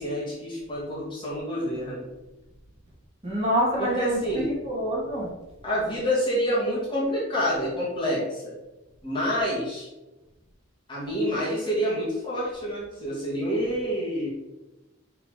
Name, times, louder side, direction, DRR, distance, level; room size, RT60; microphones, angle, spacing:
voice 1, 0.0-2.1 3.8-4.5 5.6-8.6 9.0-9.9 10.9-14.3, equal, 25° left, -7 dB, 2.3 m, -28 dB
voice 2, 3.2-5.3, equal, 30° right, -6 dB, 2.4 m, -26 dB
5.7 x 4.4 x 5.1 m, 1.0 s
head